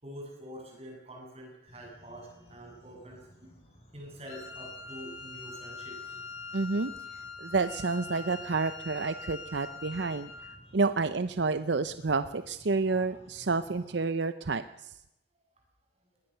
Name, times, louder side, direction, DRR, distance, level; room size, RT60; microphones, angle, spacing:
voice 1, 0.0-3.6 3.9-6.0 12.9-13.2 13.7-13.9 14.4-14.5, equal, 30° right, 1 dB, 7.6 m, -46 dB
sound 1, 1.7-14.0, equal, 35° left, 7.7 m, -57 dB
Wind instrument woodwind instrument, 4.3-10.6, left 4 dB, 85° left, 4.3 m, -43 dB
voice 2, 6.5-6.9 7.4-10.3 10.7-14.9, right 3 dB, 60° right, 12 dB, 0.7 m, -29 dB
20.5 x 18.5 x 6.8 m, 0.89 s
head